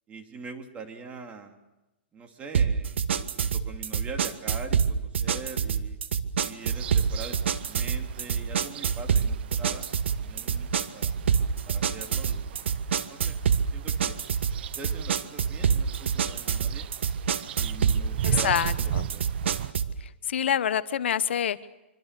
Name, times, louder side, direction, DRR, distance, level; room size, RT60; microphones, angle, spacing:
voice 1, 0.1-1.6 2.1-6.0 6.4-11.2 11.7-13.4 13.7-14.2 14.8-16.9 17.5-19.2, right 4 dB, 20° right, 4 dB, 2.9 m, -43 dB
sound 1, 2.5-20.0, right 7 dB, 75° right, 1.5 m, -27 dB
sound 2, 6.6-19.7, right 11 dB, 60° right, 0.8 m, -38 dB
voice 2, 18.2-19.1 20.3-21.7, left 9 dB, 75° left, 14 dB, 1.0 m, -26 dB
25.5 x 25.0 x 6.8 m, 1.0 s
hypercardioid pair, 140°, 6 cm